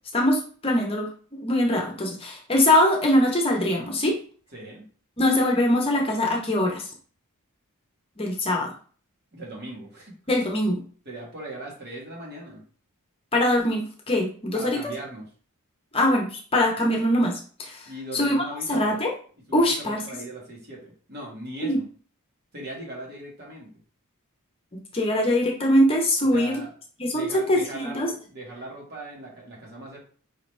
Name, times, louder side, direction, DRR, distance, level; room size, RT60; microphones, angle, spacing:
voice 1, 0.1-4.2 5.2-6.9 8.2-8.7 10.3-10.8 13.3-14.9 15.9-17.9 18.1-19.1 19.5-20.0 21.6-21.8 24.9-26.5 27.0-28.1, left 1 dB, 25° left, 0 dB, 0.8 m, -22 dB
voice 2, 4.5-4.8 9.3-10.2 11.0-12.6 14.5-15.3 17.9-19.0 19.5-21.8 22.5-23.7 26.3-26.7 27.0-30.0, right 1 dB, 50° right, -2 dB, 1.7 m, -39 dB
5.0 x 2.9 x 3.2 m, 0.42 s
head